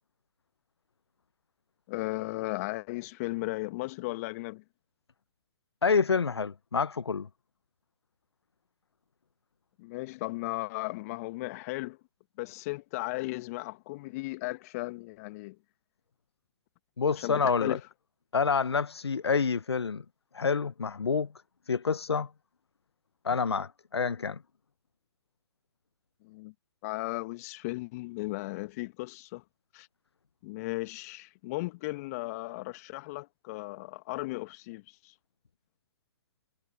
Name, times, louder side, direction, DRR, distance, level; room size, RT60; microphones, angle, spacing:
voice 1, 1.9-4.6 9.8-12.0 12.4-15.5 17.2-17.8 26.2-26.5 26.8-29.4 29.7-29.9 30.4-35.1, left 22 dB, 35° left, 1.6 m, -36 dB
voice 2, 5.8-7.3 17.0-17.8 18.3-20.0 20.3-21.3 21.7-22.3 23.2-24.4, left 5 dB, 80° left, 0.8 m, -27 dB
figure-of-eight pair, 125°, 13 cm